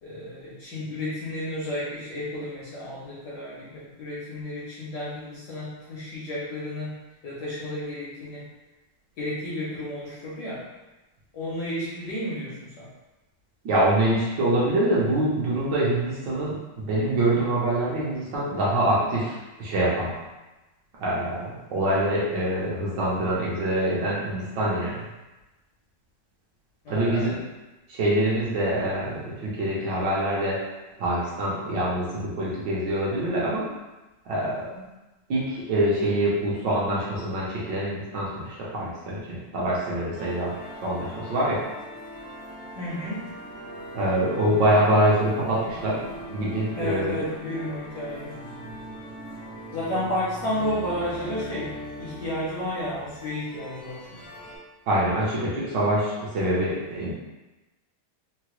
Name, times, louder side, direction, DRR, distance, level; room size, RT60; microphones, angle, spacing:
voice 1, 0.0-7.0 7.2-8.5 9.2-10.7 11.3-12.9 26.8-27.4 42.7-43.3 46.8-48.4 49.7-54.2, left 1 dB, 70° left, -8 dB, 1.0 m, -32 dB
voice 2, 13.6-20.2 21.0-25.0 26.9-27.3 27.9-30.6 31.0-33.7 34.3-34.8 35.3-40.5 40.8-41.6 43.9-46.0 46.3-47.2 54.9-57.1, right 1 dB, 65° right, -7 dB, 1.2 m, -25 dB
sound 1, 40.1-54.6, equal, 40° right, 0.5 m, -40 dB
3.8 x 2.0 x 3.0 m, 1.1 s
omnidirectional pair, 2.4 m